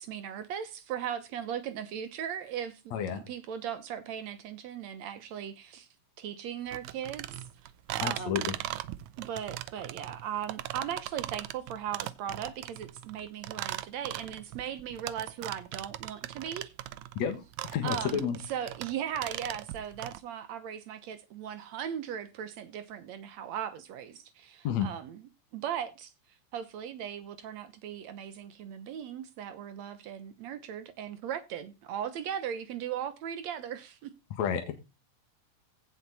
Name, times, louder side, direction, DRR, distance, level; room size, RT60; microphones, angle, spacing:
voice 1, 0.0-5.9 6.2-7.7 8.0-8.5 9.2-16.7 17.8-18.2 18.5-25.2 25.5-26.1 26.5-34.1, right 9 dB, 70° right, 1.7 m, -38 dB
voice 2, 2.9-3.2 8.0-8.6 17.2-18.4 24.6-24.9 34.3-34.7, left 8 dB, 55° left, 2.6 m, -31 dB
sound 1, 6.7-20.2, right 14 dB, 85° right, 1.6 m, -39 dB
16.5 x 5.5 x 4.1 m
omnidirectional pair, 4.1 m